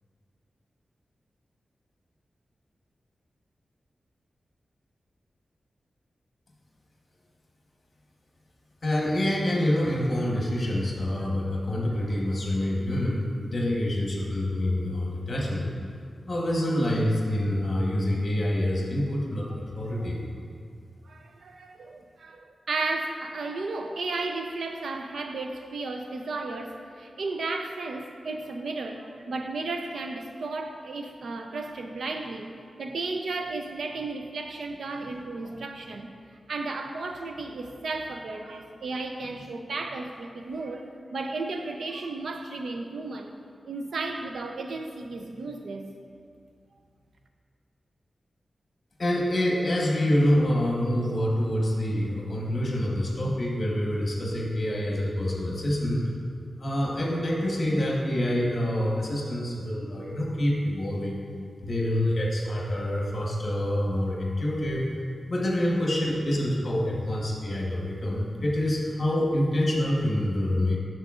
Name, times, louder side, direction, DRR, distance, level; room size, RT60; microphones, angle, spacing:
voice 1, 8.8-15.7 16.3-20.2 49.0-56.1 56.6-61.2 61.6-64.8 65.3-70.8, left 1 dB, 40° left, -2 dB, 1.1 m, -26 dB
voice 2, 21.1-36.1 36.5-43.3 43.7-45.9, right 3 dB, 80° right, 4 dB, 0.5 m, -34 dB
10.5 x 6.4 x 2.4 m, 2.2 s
wide cardioid pair, 160°, 0 cm